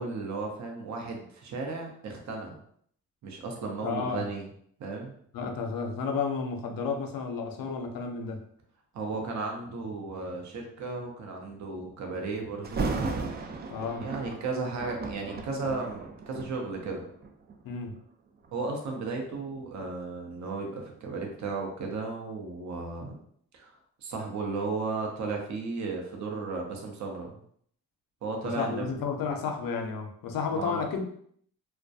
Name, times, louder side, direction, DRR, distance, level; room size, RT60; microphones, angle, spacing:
voice 1, 0.0-2.6 3.2-4.4 4.8-5.1 8.9-12.9 14.0-17.1 18.5-23.1 23.5-23.7 24.0-27.4 28.2-28.9 30.5-30.9, right 3 dB, 50° right, 1 dB, 0.7 m, -34 dB
voice 2, 3.8-4.2 5.3-8.4 13.7-14.1 17.6-18.0 28.4-31.0, left 5 dB, 65° left, 4 dB, 0.6 m, -32 dB
Thunder, 12.6-17.6 18.3-18.5 19.1-22.0 22.3-22.4, right 3 dB, 30° right, 0.3 m, -36 dB
2.2 x 2.2 x 2.6 m, 0.65 s
supercardioid pair, 55°, 37 cm